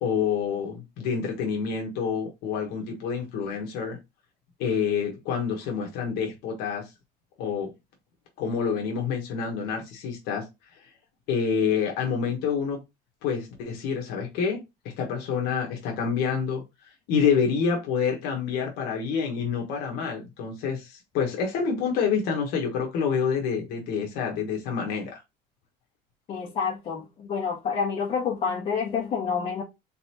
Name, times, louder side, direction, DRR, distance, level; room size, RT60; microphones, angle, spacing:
voice 1, 0.0-4.0 4.6-6.8 7.4-7.7 8.4-10.5 11.3-12.8 13.2-14.6 15.0-16.6 17.1-25.2, left 6 dB, 65° left, 1.4 m, -27 dB
voice 2, 26.3-29.6, left 6 dB, 35° left, 1.6 m, -28 dB
4.0 x 3.7 x 2.9 m
cardioid pair, 175°, 18 cm